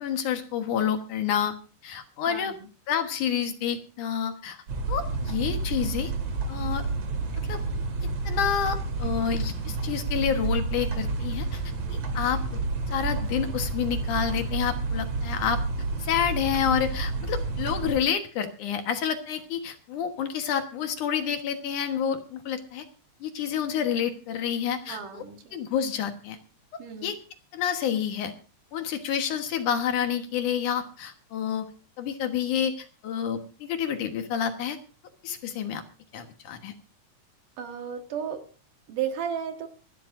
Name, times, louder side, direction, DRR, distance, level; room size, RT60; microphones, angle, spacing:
voice 1, 0.0-1.5 1.8-2.6 2.9-4.6 4.9-6.1 6.5-6.9 7.5-7.6 8.2-11.6 11.9-12.6 12.9-15.6 16.0-22.8 23.2-25.3 25.5-26.4 26.7-27.2 27.5-28.3 28.7-31.7 32.0-34.8 35.2-35.8 36.1-36.7, left 8 dB, 65° left, 6 dB, 2.8 m, -29 dB
sound 1, 4.7-18.0, right 3 dB, 50° right, 3.1 m, -30 dB
voice 2, 24.9-25.6 26.8-27.1 37.6-38.4 38.9-39.7, right 8 dB, 70° right, 5 dB, 3.2 m, -33 dB
25.0 x 12.0 x 2.6 m, 0.35 s
omnidirectional pair, 3.9 m